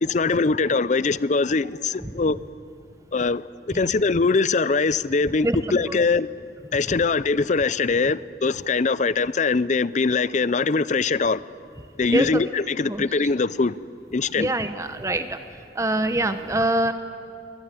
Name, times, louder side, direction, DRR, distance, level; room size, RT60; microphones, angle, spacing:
voice 1, 0.0-2.4 3.1-6.3 6.7-11.4 12.0-13.7 14.1-14.5, left 4 dB, 40° left, 0.5 m, -22 dB
voice 2, 12.1-12.4 12.9-13.0 14.4-15.4 15.8-16.9, right 1 dB, 15° right, 0.8 m, -24 dB
24.0 x 20.0 x 9.7 m
head